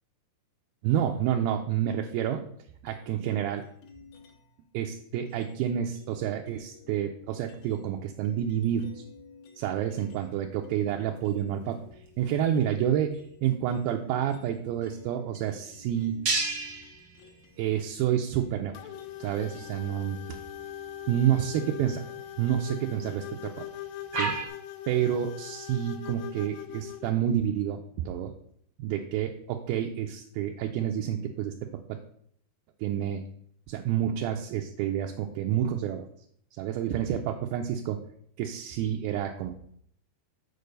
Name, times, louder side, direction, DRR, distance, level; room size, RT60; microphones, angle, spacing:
voice 1, 0.8-2.4 2.8-3.6 4.7-9.1 9.6-16.3 17.6-18.8 19.2-20.4 21.1-22.1 22.4-23.7 24.1-24.4 24.9-28.3 28.8-32.0 32.8-33.2 33.7-36.1 36.6-38.0 38.4-39.6, right 10 dB, 80° right, 3 dB, 2.2 m, -29 dB
sound 1, 2.9-4.6 5.3-10.3 10.6-22.1, left 6 dB, 65° left, 1.9 m, -54 dB
sound 2, 9.7-24.5, right 3 dB, 60° right, 1.2 m, -39 dB
sound 3, 18.7-27.1, left 11 dB, 85° left, 2.6 m, -41 dB
6.7 x 4.5 x 6.5 m, 0.67 s
omnidirectional pair, 4.6 m